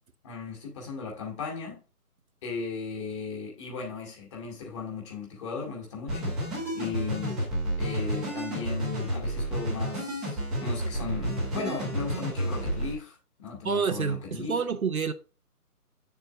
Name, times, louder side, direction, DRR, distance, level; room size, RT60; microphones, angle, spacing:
voice 1, 0.2-1.8 2.4-6.4 6.7-7.4 7.8-14.6, left 5 dB, 20° left, 2.2 m, -36 dB
sound 1, 6.1-12.9, right 1 dB, ahead, 1.1 m, -31 dB
voice 2, 13.6-15.1, right 6 dB, 60° right, 0.9 m, -28 dB
8.6 x 6.9 x 2.5 m
figure-of-eight pair, 155°, 47 cm